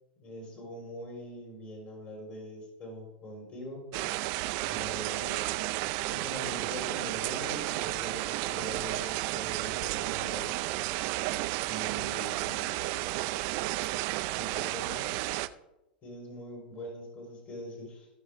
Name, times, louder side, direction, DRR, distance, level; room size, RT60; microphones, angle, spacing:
voice 1, 0.2-3.9 4.6-5.5 6.1-10.5 11.7-12.8 14.4-15.2 16.0-18.1, equal, 40° left, 0 dB, 4.0 m, -43 dB
sound 1, 3.9-15.5, right 18 dB, 50° right, 0.5 m, -32 dB
16.5 x 6.4 x 3.5 m, 0.94 s
hypercardioid pair, 95°, 5 cm